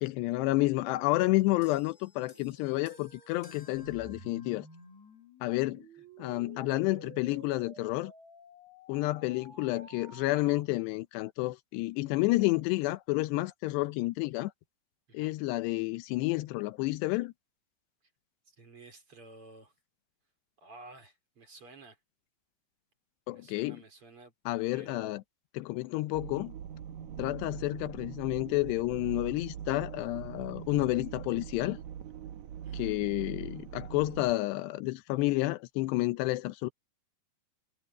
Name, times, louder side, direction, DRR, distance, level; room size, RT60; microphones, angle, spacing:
voice 1, 0.0-4.7 5.4-5.8 6.2-8.1 8.9-14.5 15.1-17.3 23.3-23.8 24.5-25.2 25.6-26.5 27.2-31.8 32.7-36.7, left 20 dB, 85° left, 2.9 m, -30 dB
sound 1, 1.6-5.2 6.1-6.3, left 1 dB, 65° left, 0.4 m, -58 dB
sound 2, 3.8-10.6, right 4 dB, 90° right, 9.4 m, -52 dB
voice 2, 18.5-19.7 20.6-22.0 23.3-24.3 24.7-25.2 32.6-33.0, right 3 dB, 35° right, 4.4 m, -52 dB
sound 3, 26.1-34.3, right 9 dB, 70° right, 1.9 m, -42 dB
omnidirectional pair, 4.8 m